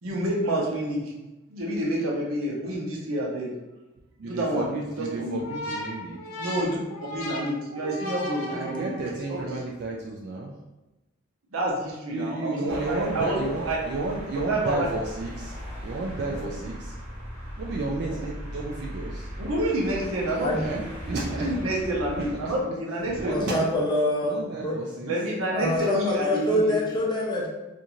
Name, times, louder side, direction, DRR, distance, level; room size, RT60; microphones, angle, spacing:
voice 1, 0.0-1.1 1.5-3.5 4.2-4.7 5.0-5.4 6.3-6.8 7.1-8.9 9.3-9.6 11.5-13.8 14.5-14.9 16.4-16.5 19.4-20.8 21.4-23.3 25.1-26.7, right 1 dB, 75° right, -3 dB, 0.7 m, -28 dB
voice 2, 4.2-6.2 8.5-10.5 12.1-15.6 15.8-17.0 17.6-19.3 20.6-21.7 22.1-22.5 23.1-23.7 24.2-25.2, right 2 dB, 50° right, -3 dB, 0.3 m, -32 dB
sound 1, 5.4-9.3, left 1 dB, 80° left, 0.7 m, -36 dB
sound 2, 12.7-22.7 23.0-23.4, equal, 10° right, 0.9 m, -38 dB
voice 3, 23.3-24.8 25.5-27.5, left 1 dB, 20° left, -4 dB, 0.5 m, -25 dB
2.5 x 2.5 x 2.9 m, 1.0 s
head